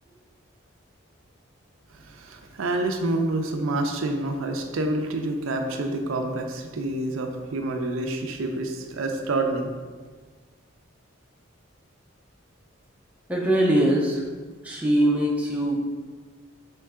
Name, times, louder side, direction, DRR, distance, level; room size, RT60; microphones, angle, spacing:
voice 1, 2.1-9.7, right 2 dB, 75° right, 4 dB, 0.5 m, -28 dB
voice 2, 13.3-14.2 14.6-15.8, right 1 dB, 5° right, -3 dB, 0.5 m, -22 dB
4.5 x 3.1 x 3.6 m, 1.5 s
head